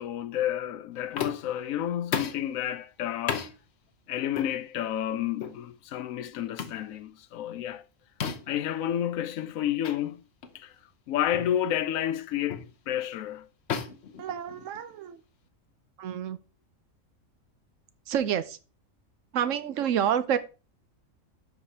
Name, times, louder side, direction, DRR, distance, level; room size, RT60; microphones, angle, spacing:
voice 1, 0.0-3.5 4.1-7.8 8.5-10.2 10.5-10.8 11.1-13.5, left 11 dB, 85° left, 1.0 m, -30 dB
sound 1, 1.2-1.6 2.1-2.5 3.3-3.5 4.3-4.5 5.4-5.6 6.6-6.8 8.2-8.6 9.8-10.0 10.4-10.6 11.3-11.6 12.5-12.7 13.7-14.9, left 7 dB, 55° left, 1.0 m, -33 dB
voice 2, 14.2-15.2 16.0-16.4 18.1-18.6 19.3-20.4, right 9 dB, 75° right, 1.0 m, -28 dB
12.0 x 4.9 x 2.7 m
omnidirectional pair, 1.4 m